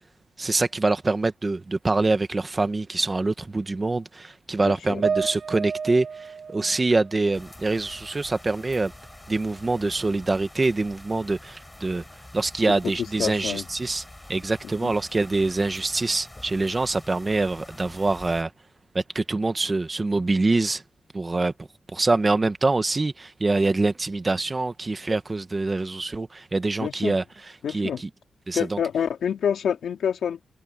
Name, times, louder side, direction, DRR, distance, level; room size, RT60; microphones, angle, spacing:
voice 1, 0.4-8.9 9.3-12.0 12.3-14.0 14.3-18.5 18.9-20.8 21.1-21.5 21.9-27.2 27.7-28.1 28.5-28.8, right 3 dB, 20° right, 1.3 m, -25 dB
voice 2, 4.6-5.0 12.6-13.7 14.8-14.9 26.8-27.2 27.6-28.0 28.5-30.4, left 8 dB, 80° left, 2.5 m, -27 dB
sound 1, 5.0-8.4 8.8-9.9, right 6 dB, 55° right, 1.0 m, -33 dB
sound 2, 7.3-18.4, left 1 dB, 10° left, 5.9 m, -46 dB
wide cardioid pair, 155°, 0 cm